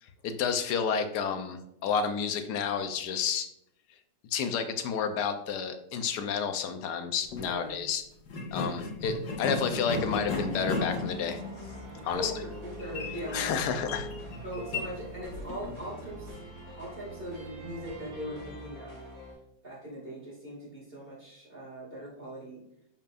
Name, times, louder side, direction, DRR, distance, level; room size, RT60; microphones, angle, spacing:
voice 1, 0.2-3.5 4.3-8.0 8.5-11.4 12.0-12.3 13.3-14.1, left 6 dB, 70° left, 8 dB, 1.2 m, -30 dB
sound 1, 7.2-7.5 8.3-15.8, left 3 dB, 85° left, 2.1 m, -36 dB
voice 2, 7.4-7.8 12.1-13.8 14.4-16.3 16.7-19.0 19.6-22.6, equal, 30° right, -5 dB, 2.2 m, -40 dB
sound 2, 9.9-19.3, right 1 dB, 50° right, 2.4 m, -44 dB
7.1 x 5.4 x 2.4 m, 0.77 s
omnidirectional pair, 2.0 m